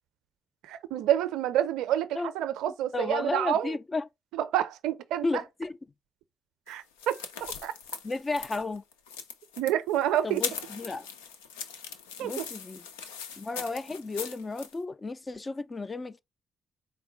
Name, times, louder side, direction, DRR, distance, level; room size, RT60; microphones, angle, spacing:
voice 1, 0.6-3.7 4.3-5.4 6.7-7.7 9.6-10.4 12.2-12.5, right 11 dB, 75° right, 0.4 m, -28 dB
voice 2, 2.9-4.1 5.2-5.8 8.0-8.8 10.2-11.1 12.2-12.8 13.4-16.2, left 3 dB, 35° left, 0.4 m, -33 dB
sound 1, 6.7-14.7, left 6 dB, 90° left, 0.4 m, -40 dB
4.5 x 2.1 x 3.6 m
hypercardioid pair, 45°, 0 cm